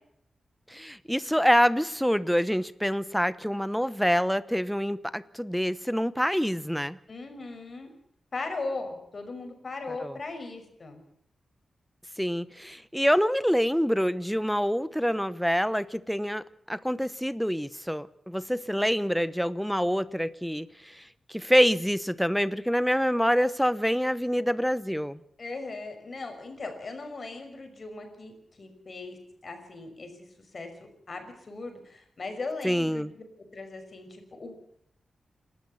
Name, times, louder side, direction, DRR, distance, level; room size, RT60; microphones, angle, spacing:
voice 1, 0.7-7.0 10.0-10.1 12.2-21.0 21.3-25.2 32.6-33.1, equal, ahead, 15 dB, 0.8 m, -26 dB
voice 2, 7.1-7.9 8.3-11.0 25.4-29.2 29.4-30.1 30.5-30.7 31.1-33.1 33.5-34.6, left 3 dB, 45° left, 6 dB, 5.9 m, -38 dB
29.0 x 13.0 x 7.0 m, 0.70 s
wide cardioid pair, 115°, 0 cm